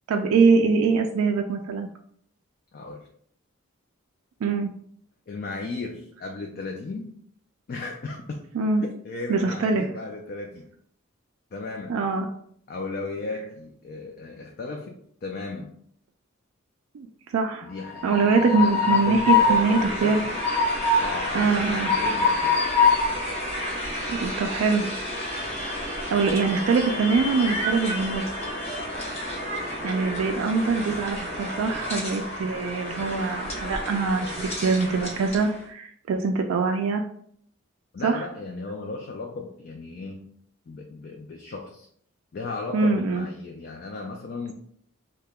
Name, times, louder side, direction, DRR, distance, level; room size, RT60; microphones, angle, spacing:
voice 1, 0.1-1.9 4.4-4.7 8.5-8.8 9.3-9.9 11.9-12.3 16.9-17.7 18.0-20.2 21.3-21.9 24.1-24.9 25.6-25.8 26.1-28.3 29.8-37.0 38.0-38.2 42.7-43.3, right 4 dB, 85° right, 3 dB, 0.3 m, -23 dB
voice 2, 2.7-3.1 5.3-7.1 7.7-8.4 8.8-10.7 11.5-12.0 12.7-15.8 17.6-20.3 21.0-22.6 37.9-40.3 40.7-41.9 42.3-44.5, left 3 dB, 45° left, 1 dB, 0.3 m, -35 dB
Train, 17.7-35.5, left 3 dB, 30° left, 0.8 m, -27 dB
2.8 x 2.2 x 3.4 m, 0.63 s
head